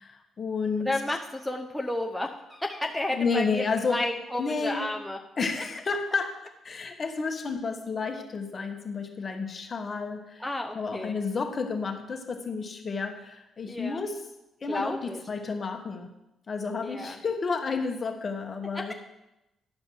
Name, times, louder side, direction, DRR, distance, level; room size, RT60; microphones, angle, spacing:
voice 1, 0.0-0.9 3.1-4.0 4.4-4.9 5.4-10.4 10.7-14.2 14.6-16.1 16.5-18.9, left 4 dB, 40° left, 5 dB, 1.3 m, -31 dB
voice 2, 0.8-5.2 10.4-11.2 13.7-14.0 14.7-15.2 16.8-17.2 18.7-18.9, left 1 dB, 5° left, 1 dB, 0.8 m, -32 dB
11.0 x 5.2 x 6.2 m, 0.91 s
cardioid pair, 90°, 0 cm